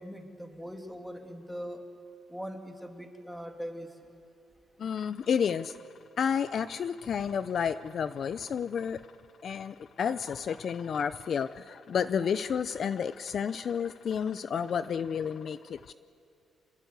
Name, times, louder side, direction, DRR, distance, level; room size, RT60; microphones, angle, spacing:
voice 1, 0.0-1.8 2.3-3.9, equal, ahead, 4 dB, 2.7 m, -41 dB
voice 2, 4.8-5.8 6.2-9.1 9.4-15.9, left 7 dB, 55° left, 14 dB, 0.6 m, -31 dB
26.0 x 20.5 x 8.2 m, 2.6 s
cardioid pair, 90°, 0 cm